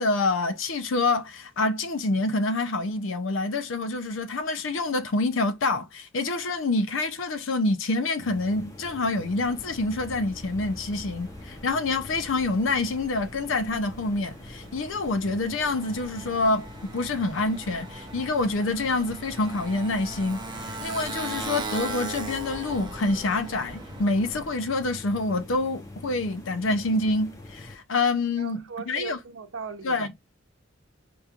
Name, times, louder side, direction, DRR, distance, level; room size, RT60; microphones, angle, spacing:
voice 1, 0.0-29.2 29.8-30.1, left 2 dB, 70° left, 0.6 m, -27 dB
sound 1, 8.2-27.8, left 2 dB, 15° left, 0.9 m, -45 dB
Motorcycle, 9.2-24.6, right 2 dB, 25° right, 0.7 m, -40 dB
voice 2, 28.4-30.1, right 5 dB, 75° right, 0.7 m, -38 dB
4.9 x 3.1 x 2.4 m
head